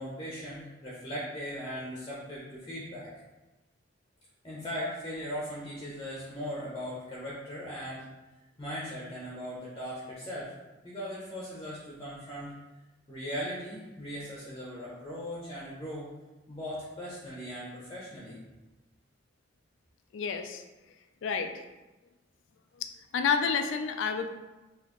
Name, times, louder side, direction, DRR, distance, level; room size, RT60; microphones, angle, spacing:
voice 1, 0.0-3.1 4.4-8.1 8.6-10.5 10.8-12.5 13.1-16.1 16.5-18.4, equal, 20° left, -6 dB, 0.7 m, -38 dB
voice 2, 20.1-20.6 21.2-21.6 22.8-24.3, left 6 dB, 70° left, 7 dB, 0.3 m, -30 dB
4.1 x 2.9 x 3.0 m, 1.1 s
head